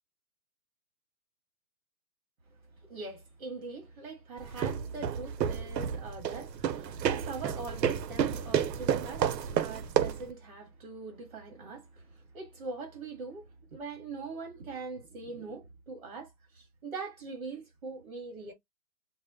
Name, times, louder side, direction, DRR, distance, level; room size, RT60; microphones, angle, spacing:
voice 1, 2.9-18.5, right 3 dB, 35° right, 0.9 m, -42 dB
sound 1, 4.4-10.3, right 8 dB, 80° right, 0.6 m, -31 dB
2.0 x 2.0 x 3.4 m
hypercardioid pair, 165°, 49 cm